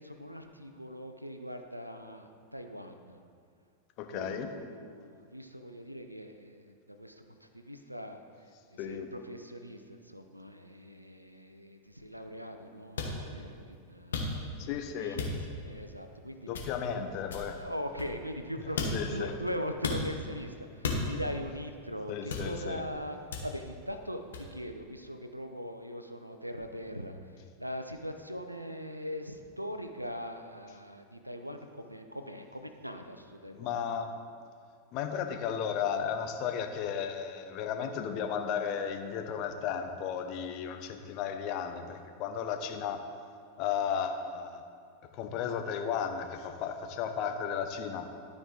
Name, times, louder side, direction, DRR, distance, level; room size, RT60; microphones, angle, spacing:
voice 1, 0.0-3.2 4.1-14.2 14.6-16.5 17.6-23.2 23.4-33.8 43.5-44.0, equal, 90° right, 7 dB, 0.5 m, -41 dB
voice 2, 4.0-4.5 8.8-9.1 14.6-15.2 16.5-17.6 18.9-19.3 22.1-22.8 33.5-34.1 34.9-43.0 43.6-44.6 45.1-48.1, left 7 dB, 40° left, 6 dB, 0.7 m, -34 dB
sound 1, 13.0-13.2 14.1-14.6 15.2-15.6 16.5-16.9 17.3-18.4 18.8-19.2 19.8-20.1 20.8-21.3 22.3-22.8 23.3-23.7 24.3-24.5, left 3 dB, 65° left, 1.2 m, -35 dB
12.0 x 4.8 x 3.9 m, 2.2 s
figure-of-eight pair, 90°, 0 cm